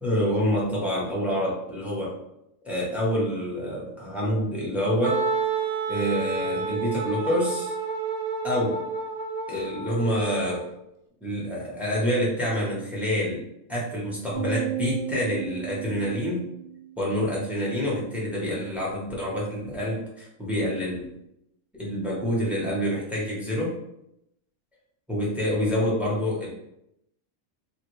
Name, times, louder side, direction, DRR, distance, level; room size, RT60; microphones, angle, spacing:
voice 1, 0.0-2.2 2.7-5.2 5.9-7.7 8.4-8.8 9.5-10.6 11.2-13.4 13.7-16.4 17.0-21.1 21.8-23.7 25.1-26.5, equal, ahead, -6 dB, 0.5 m, -27 dB
Wind instrument woodwind instrument, 5.0-10.7, right 4 dB, 85° right, 1.1 m, -30 dB
sound 1, 14.3-16.9, right 10 dB, 40° right, 0.8 m, -33 dB
3.3 x 2.2 x 3.0 m, 0.81 s
omnidirectional pair, 1.5 m